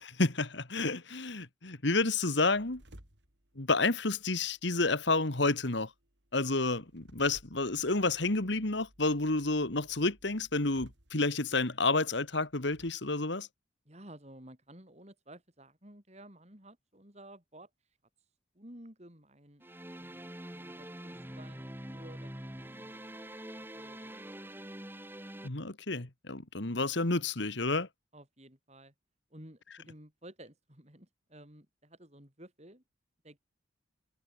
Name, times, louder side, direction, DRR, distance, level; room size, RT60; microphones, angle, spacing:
voice 1, 0.2-2.8 3.6-5.9 6.3-13.5 25.4-27.9, left 3 dB, 65° left, 2.0 m, -30 dB
sound 1, 2.5-12.9, right 1 dB, 65° right, 6.7 m, -60 dB
voice 2, 13.9-17.7 18.6-19.7 20.0-22.3 22.6-24.4 28.1-28.9 29.3-32.8 33.2-33.4, right 1 dB, 35° right, 5.3 m, -54 dB
sound 2, 19.6-25.5, right 1 dB, 10° right, 2.6 m, -45 dB
head